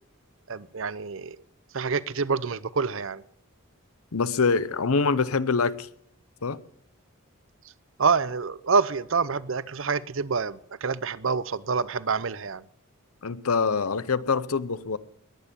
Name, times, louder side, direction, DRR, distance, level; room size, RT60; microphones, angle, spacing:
voice 1, 0.5-1.4 1.7-3.2 8.0-12.6, right 5 dB, 65° right, 0.7 m, -27 dB
voice 2, 4.1-5.9 6.4-6.6 13.2-15.0, left 4 dB, 85° left, 0.8 m, -25 dB
21.0 x 9.3 x 6.9 m
head